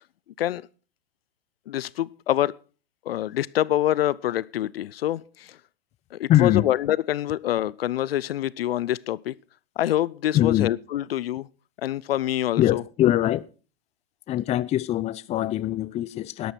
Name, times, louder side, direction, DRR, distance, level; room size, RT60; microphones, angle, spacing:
voice 1, 1.7-2.6 3.1-5.6 6.1-9.3 9.8-11.5 11.8-12.8, left 13 dB, 80° left, 0.6 m, -26 dB
voice 2, 6.3-6.7 10.3-10.7 12.6-13.4 14.3-16.5, left 13 dB, 20° left, 0.5 m, -22 dB
12.5 x 12.0 x 4.4 m
hypercardioid pair, 115°, 29 cm